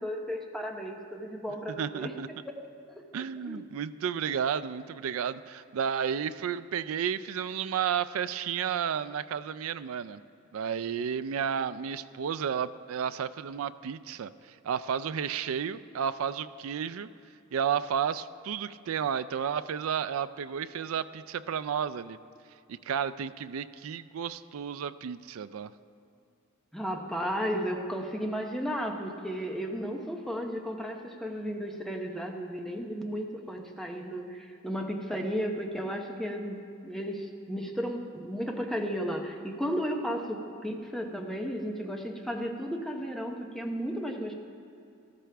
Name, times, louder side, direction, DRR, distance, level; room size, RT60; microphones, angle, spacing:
voice 1, 0.0-2.1 2.4-2.5 2.9-3.0 3.4-3.6 26.7-44.3, equal, ahead, 2 dB, 0.8 m, -34 dB
voice 2, 1.8-2.3 3.1-10.2 10.5-17.1 17.5-22.2 22.7-25.7, right 7 dB, 90° right, 15 dB, 0.4 m, -32 dB
14.0 x 13.5 x 3.4 m, 2.5 s
head